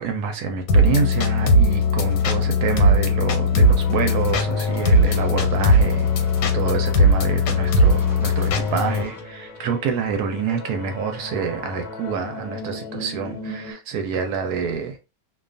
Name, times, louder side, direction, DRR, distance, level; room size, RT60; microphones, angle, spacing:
voice 1, 0.0-6.3 6.5-15.0, right 6 dB, 75° right, 1.1 m, -27 dB
sound 1, 0.7-9.0, left 1 dB, 85° left, 1.2 m, -18 dB
sound 2, 3.6-13.7, left 1 dB, 55° left, 0.7 m, -37 dB
sound 3, 4.7-6.5 7.7-9.2, left 1 dB, ahead, 0.8 m, -42 dB
2.6 x 2.3 x 2.4 m
omnidirectional pair, 1.8 m